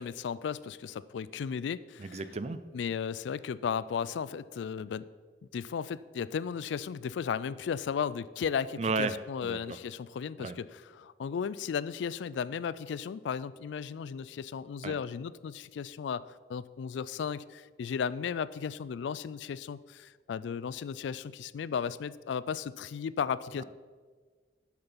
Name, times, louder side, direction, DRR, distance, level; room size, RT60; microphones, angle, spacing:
voice 1, 0.0-2.2 2.7-5.0 5.5-23.6, left 7 dB, 85° left, 18 dB, 0.3 m, -35 dB
voice 2, 2.0-2.6 8.8-9.2 9.4-9.8 10.4-10.6 14.8-14.9, right 4 dB, 35° right, 13 dB, 0.4 m, -33 dB
7.9 x 6.8 x 5.7 m, 1.5 s
head